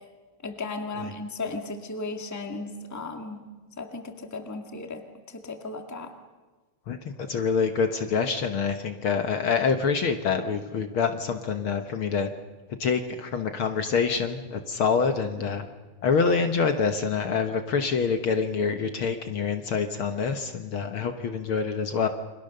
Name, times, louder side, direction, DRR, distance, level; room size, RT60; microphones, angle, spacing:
voice 1, 0.4-3.4 3.8-6.1, left 3 dB, 5° left, 5 dB, 1.5 m, -35 dB
voice 2, 6.9-12.3 12.8-15.7 16.0-22.1, left 5 dB, 55° left, 7 dB, 1.6 m, -26 dB
29.0 x 25.0 x 6.7 m, 1.3 s
omnidirectional pair, 3.4 m